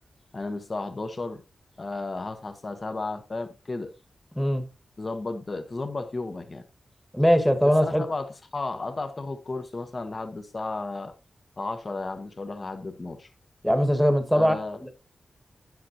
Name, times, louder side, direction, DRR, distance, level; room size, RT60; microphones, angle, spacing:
voice 1, 0.3-1.4 1.8-3.9 5.0-6.6 7.8-11.1 11.6-13.3 14.3-14.8, left 3 dB, 40° left, 1.1 m, -33 dB
voice 2, 4.3-4.7 7.1-8.0 13.6-14.9, equal, ahead, 1.4 m, -21 dB
9.3 x 7.7 x 3.0 m
wide cardioid pair, 115°, 0 cm